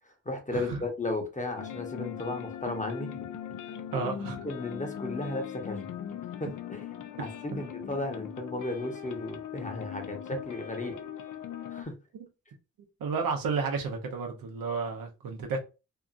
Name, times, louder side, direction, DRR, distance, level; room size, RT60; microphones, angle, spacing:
voice 1, 0.2-3.6 4.0-4.1 4.4-5.9 6.4-6.9 7.2-7.3 7.6-11.0 11.7-11.9, left 2 dB, 20° left, 0.9 m, -35 dB
sound 1, 1.6-11.8, left 9 dB, 65° left, 0.5 m, -40 dB
voice 2, 3.9-4.4 13.0-15.6, right 4 dB, 90° right, 0.8 m, -32 dB
2.8 x 2.4 x 2.4 m
cardioid pair, 55°, 34 cm